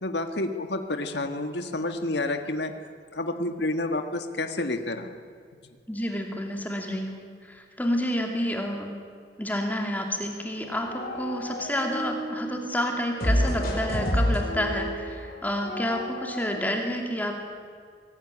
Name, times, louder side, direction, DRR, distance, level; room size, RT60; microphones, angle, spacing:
voice 1, 0.0-2.7 3.1-5.1, left 2 dB, 70° left, 6 dB, 1.7 m, -29 dB
voice 2, 5.9-9.0 9.4-17.3, equal, 10° left, 2 dB, 2.6 m, -29 dB
sound 1, 10.5-12.6 13.2-16.6, equal, 55° left, 6.3 m, -29 dB
24.0 x 18.5 x 10.0 m, 2.1 s
head